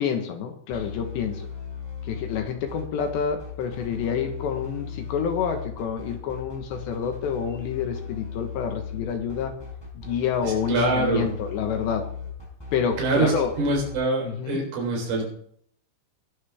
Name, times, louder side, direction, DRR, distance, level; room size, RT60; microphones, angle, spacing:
voice 1, 0.0-1.5 2.0-9.5 9.9-12.1 12.7-13.5 14.2-14.6, left 7 dB, 70° left, 5 dB, 3.1 m, -28 dB
sound 1, 0.7-13.9, left 6 dB, 5° left, 4.2 m, -37 dB
voice 2, 10.4-11.3 13.0-15.2, right 2 dB, 80° right, 1 dB, 6.4 m, -24 dB
20.5 x 10.5 x 3.5 m, 0.63 s
omnidirectional pair, 5.8 m